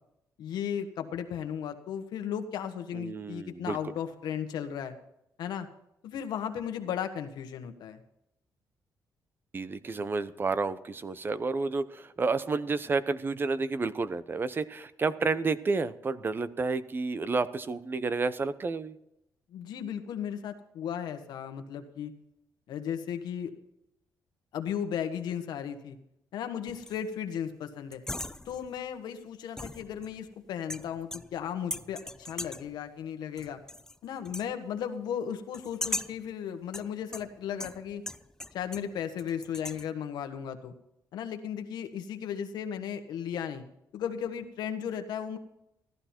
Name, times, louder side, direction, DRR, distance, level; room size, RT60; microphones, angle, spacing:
voice 1, 0.4-4.9 5.4-5.7 6.0-8.0 19.5-22.1 22.7-23.5 24.5-26.0 26.3-28.0 28.4-33.6 34.0-38.0 38.5-40.7 41.1-43.6 43.9-45.4, left 8 dB, 85° left, 7 dB, 1.5 m, -35 dB
voice 2, 2.9-3.8 9.5-19.0, right 4 dB, 30° right, 14 dB, 0.7 m, -30 dB
sound 1, 26.7-27.1 27.9-28.8 29.6-30.3 30.7-31.4 31.7-32.7 33.4-34.0 34.2-34.5 35.5-36.3 36.7-38.9 39.2-39.9, left 1 dB, 10° left, 0.5 m, -39 dB
14.5 x 12.5 x 4.4 m, 0.81 s
cardioid pair, 120°, 7 cm